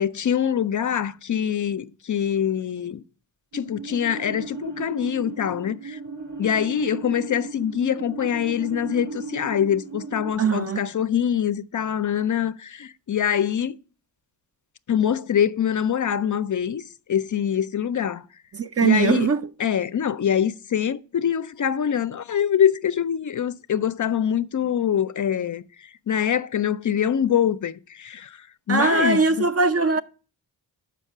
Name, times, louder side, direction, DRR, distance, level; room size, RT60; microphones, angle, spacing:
voice 1, 0.0-3.0 3.5-6.0 6.4-13.8 14.9-18.2 18.8-19.3 19.6-29.4, left 9 dB, 45° left, 0.4 m, -24 dB
sound 1, 3.5-10.3, right 3 dB, 90° right, 1.5 m, -36 dB
voice 2, 10.4-10.8 18.5-19.5 28.7-30.0, right 4 dB, 35° right, 0.5 m, -20 dB
6.5 x 5.2 x 6.5 m
cardioid pair, 70°, 42 cm